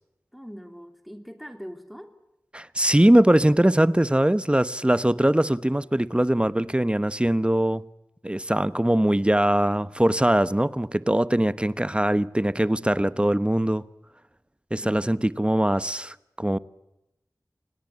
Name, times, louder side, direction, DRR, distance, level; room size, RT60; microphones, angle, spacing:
voice 1, 0.3-2.2 14.8-15.2, equal, ahead, 3.0 m, -42 dB
voice 2, 2.5-7.8 8.2-13.8 14.7-16.6, right 1 dB, 15° right, 1.0 m, -21 dB
28.5 x 19.0 x 8.6 m
wide cardioid pair, 45°, 7 cm